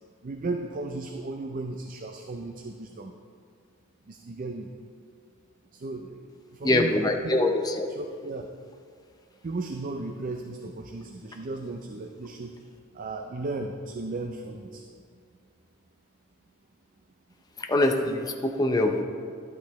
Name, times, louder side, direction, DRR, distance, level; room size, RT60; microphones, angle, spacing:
voice 1, 0.2-3.1 4.1-4.7 5.7-7.0 7.2-7.4 7.9-8.4 9.4-12.7 12.9-14.8, right 3 dB, 40° right, 4 dB, 0.4 m, -35 dB
voice 2, 6.6-7.9 17.7-19.0, left 2 dB, 20° left, 3 dB, 0.6 m, -24 dB
12.0 x 8.5 x 3.1 m, 2.2 s
head